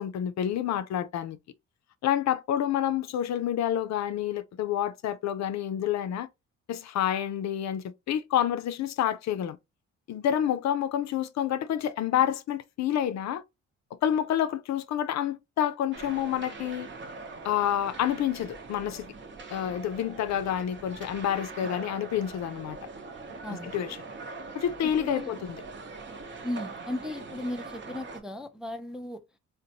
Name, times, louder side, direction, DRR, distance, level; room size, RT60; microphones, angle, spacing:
voice 1, 0.0-1.4 2.0-6.3 6.7-9.6 10.1-13.4 14.0-16.9 17.4-19.1 19.5-22.8 23.5-24.0 24.5-25.6, left 10 dB, 65° left, 0.5 m, -28 dB
sound 1, 15.9-28.2, right 3 dB, 40° right, 0.8 m, -42 dB
voice 2, 24.8-25.3 26.4-29.2, left 1 dB, ahead, 0.3 m, -36 dB
3.9 x 2.1 x 2.8 m
cardioid pair, 90°, 30 cm